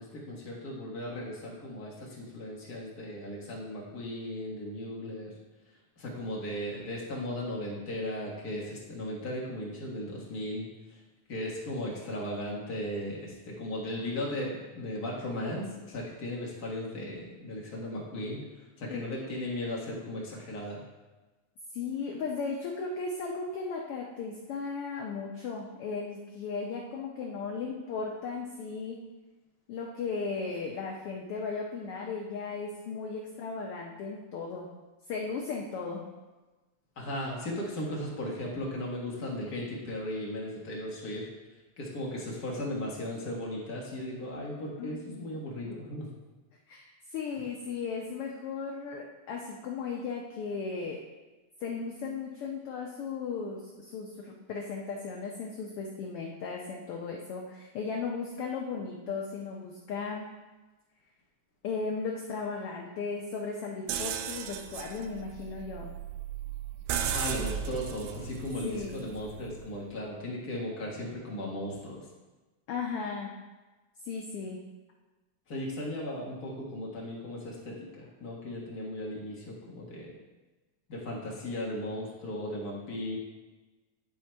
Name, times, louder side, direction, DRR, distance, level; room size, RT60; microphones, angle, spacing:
voice 1, 0.0-5.3 6.0-11.0 11.3-18.4 18.8-20.8 37.0-41.3 41.8-46.1 67.0-72.0 75.5-80.1 80.9-83.2, left 1 dB, 45° left, -4 dB, 1.3 m, -36 dB
voice 2, 21.7-29.0 29.7-34.7 35.1-36.0 44.8-45.4 46.7-46.9 47.1-51.0 51.6-60.3 61.6-65.9 68.6-69.1 72.7-73.3 74.0-74.6, left 4 dB, 80° left, -1 dB, 1.3 m, -36 dB
sound 1, 63.9-69.7, right 9 dB, 80° right, 1.8 m, -36 dB
10.0 x 3.7 x 4.4 m, 1.2 s
omnidirectional pair, 3.4 m